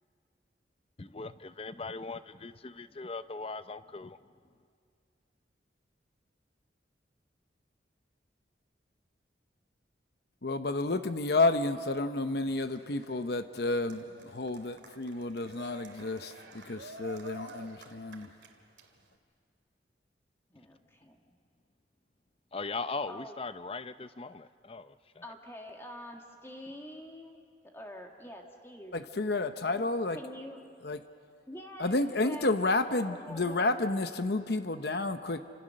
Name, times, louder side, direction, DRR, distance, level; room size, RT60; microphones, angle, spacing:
voice 1, 1.0-4.2 22.5-25.0, left 3 dB, 30° left, 13 dB, 0.6 m, -39 dB
voice 2, 10.4-18.3 28.9-30.2 30.8-31.0 31.8-35.4, left 2 dB, 60° left, 9 dB, 0.8 m, -31 dB
Cheering, 12.1-19.2, right 2 dB, 85° right, 2.4 m, -51 dB
voice 3, 20.5-21.2 23.1-23.4 25.2-28.9 30.1-30.6 31.5-33.7, left 1 dB, 15° left, 2 dB, 1.7 m, -46 dB
29.5 x 26.0 x 6.5 m, 2.3 s
head